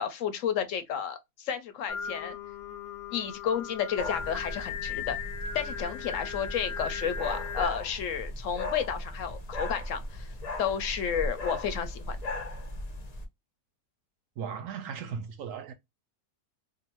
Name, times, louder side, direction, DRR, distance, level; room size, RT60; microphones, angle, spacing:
voice 1, 0.0-2.4 3.1-5.2 5.5-10.3 10.6-12.2, left 8 dB, 70° left, 0.9 m, -31 dB
Singing, 1.9-7.7, left 6 dB, 90° left, 1.2 m, -38 dB
sound 1, 4.0-13.2, left 1 dB, 45° left, 0.5 m, -37 dB
voice 2, 14.4-15.7, right 6 dB, 70° right, 0.9 m, -37 dB
2.5 x 2.4 x 2.9 m
omnidirectional pair, 1.5 m